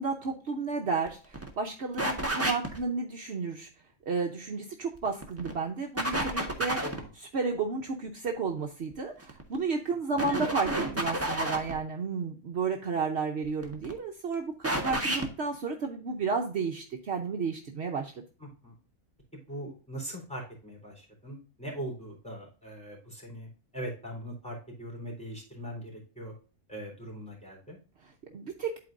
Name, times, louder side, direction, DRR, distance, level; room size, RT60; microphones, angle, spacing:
voice 1, 0.0-3.7 4.1-18.2 28.0-28.7, right 4 dB, 60° right, 2 dB, 1.1 m, -32 dB
sound 1, 1.1-1.2 1.3-1.5 2.0-2.8 4.9-5.5 6.0-7.0 9.2-9.6 10.2-11.8 13.4-13.9 14.6-15.3, right 1 dB, 10° right, 1.3 m, -30 dB
voice 2, 18.4-18.7 19.3-23.5 23.7-26.3 26.7-27.8, right 1 dB, 5° left, -2 dB, 3.6 m, -41 dB
11.5 x 4.4 x 2.5 m, 0.38 s
omnidirectional pair, 1.4 m